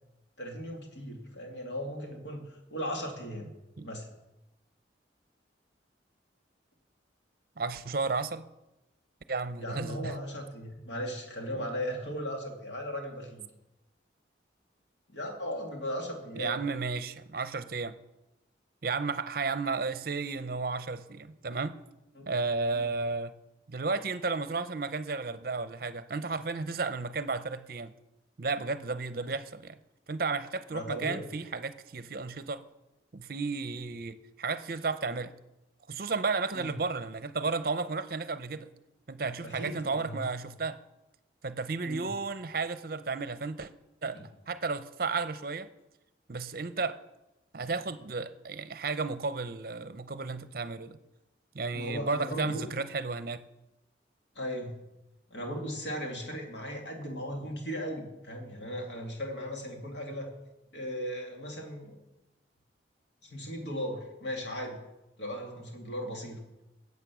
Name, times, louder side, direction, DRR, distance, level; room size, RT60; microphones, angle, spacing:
voice 1, 0.4-3.5 3.8-4.1 9.6-13.4 15.1-16.6 22.2-22.3 22.7-22.9 30.7-31.2 36.5-36.7 39.4-40.2 41.8-42.1 44.1-44.2 51.7-52.6 54.3-54.8 55.3-60.3 60.7-61.9 63.2-64.8 65.2-66.4, equal, 75° left, 2.5 m, -37 dB
voice 2, 7.6-8.4 9.3-10.2 11.6-11.7 16.4-18.0 18.8-21.8 22.3-23.3 23.7-27.9 28.4-29.8 30.1-32.6 33.1-35.3 35.9-38.7 39.1-40.8 41.4-43.7 44.0-45.7 46.3-47.0 47.5-51.0 51.5-53.4, right 4 dB, 50° right, 0.6 m, -33 dB
14.0 x 8.3 x 6.2 m
head